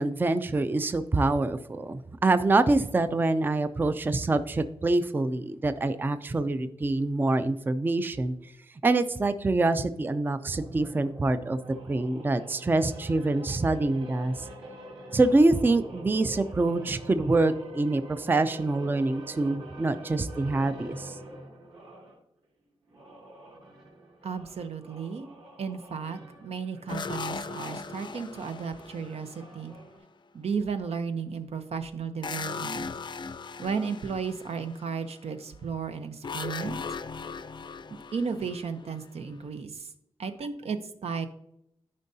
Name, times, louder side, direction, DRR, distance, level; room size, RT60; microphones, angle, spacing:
voice 1, 0.0-8.5 8.8-11.6 11.9-14.5 15.1-21.2, right 2 dB, 20° right, 11 dB, 0.4 m, -25 dB
sound 1, 10.5-22.2 22.8-30.0, right 1 dB, 60° right, 3.3 m, -46 dB
voice 2, 24.2-25.3 25.6-29.7 30.3-32.9 33.6-36.8 38.1-39.9 40.2-41.3, right 5 dB, 80° right, 8 dB, 0.8 m, -34 dB
sound 2, 26.9-29.9 32.2-35.0 36.2-39.3, left 4 dB, 45° left, 0.4 m, -38 dB
13.0 x 5.3 x 2.7 m, 0.77 s
wide cardioid pair, 150°, 10 cm